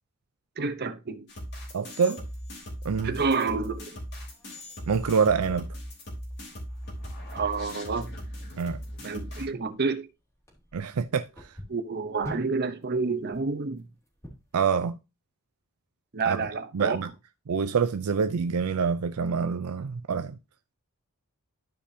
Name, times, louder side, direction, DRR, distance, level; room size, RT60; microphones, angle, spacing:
voice 1, 0.6-1.3 3.0-4.0 7.3-8.1 9.0-10.1 11.7-13.9 16.1-17.1, right 4 dB, 45° right, 0.9 m, -29 dB
sound 1, 1.3-9.5, equal, 50° left, 3.4 m, -39 dB
voice 2, 1.7-2.2 2.8-3.1 4.9-5.7 8.6-8.8 10.7-11.5 14.5-15.0 16.3-16.4 16.7-17.1 17.5-20.4, right 6 dB, 75° right, 0.5 m, -26 dB
sound 2, 2.5-14.7, equal, 15° left, 2.8 m, -50 dB
12.5 x 5.0 x 2.8 m
head